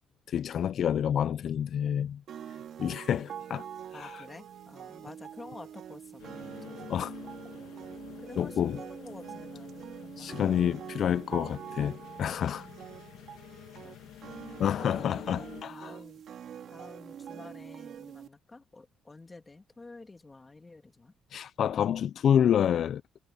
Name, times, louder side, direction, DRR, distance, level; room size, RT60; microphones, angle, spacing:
voice 1, 0.3-2.2 2.8-3.6 3.9-4.2 6.9-7.1 8.4-8.8 10.2-12.7 14.6-15.9 21.3-23.0, left 9 dB, 50° left, 0.3 m, -28 dB
sound 1, 2.3-18.3, right 9 dB, 55° right, 2.3 m, -45 dB
voice 2, 3.9-7.8 8.2-10.7 13.8-14.2 15.3-16.2 16.7-21.1, left 3 dB, 15° left, 1.9 m, -50 dB
sound 2, 6.2-15.6, left 12 dB, 75° left, 1.8 m, -48 dB
cardioid pair, 155°, 0 cm